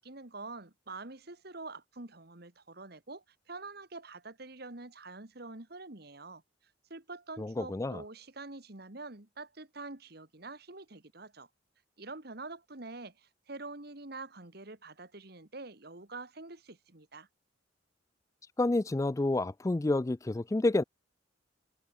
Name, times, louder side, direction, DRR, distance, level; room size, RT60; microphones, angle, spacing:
voice 1, 0.0-6.4 6.9-11.5 12.0-17.3, right 3 dB, 55° right, 2.1 m, -46 dB
voice 2, 7.4-8.0 18.6-20.8, left 2 dB, 15° left, 0.3 m, -29 dB
head